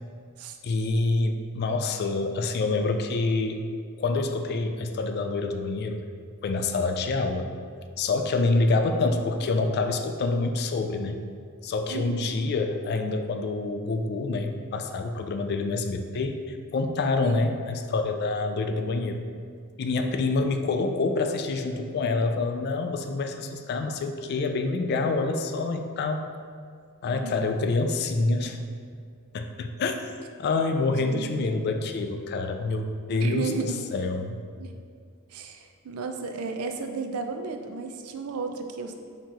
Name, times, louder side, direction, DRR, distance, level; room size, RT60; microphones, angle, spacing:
voice 1, 0.6-3.6 4.0-6.0 6.4-7.5 8.0-11.2 11.6-16.4 16.7-19.2 19.8-26.3 27.0-28.6 29.3-29.9 30.4-34.4, left 3 dB, 50° left, 6 dB, 0.3 m, -27 dB
voice 2, 11.9-12.4 17.2-17.5 27.0-27.4 30.9-31.3 33.1-33.8 34.6-34.7 35.3-38.9, right 4 dB, 90° right, 5 dB, 0.4 m, -34 dB
4.5 x 2.9 x 3.7 m, 2.2 s
head